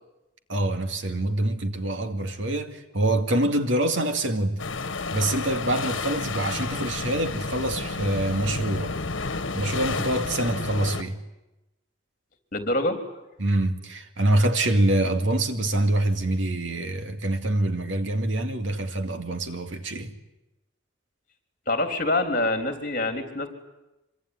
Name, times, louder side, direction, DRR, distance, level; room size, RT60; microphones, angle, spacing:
voice 1, 0.5-4.6 5.1-9.0 9.5-11.2 13.4-20.1, right 1 dB, 80° right, 2.4 m, -25 dB
sound 1, 4.6-11.0, left 3 dB, 90° left, 1.4 m, -31 dB
voice 2, 12.5-13.0 21.7-23.5, left 2 dB, 45° left, 3.7 m, -25 dB
25.5 x 23.5 x 9.7 m
head